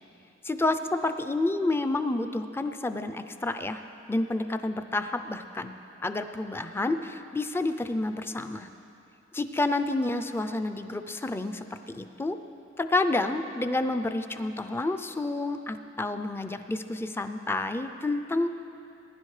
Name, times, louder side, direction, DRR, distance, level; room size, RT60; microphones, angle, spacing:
voice 1, 0.5-3.8 4.1-5.8 6.0-8.7 9.3-11.6 11.9-12.4 12.8-18.5, left 2 dB, 10° left, 8 dB, 0.4 m, -29 dB
20.0 x 10.5 x 3.2 m, 2.8 s
head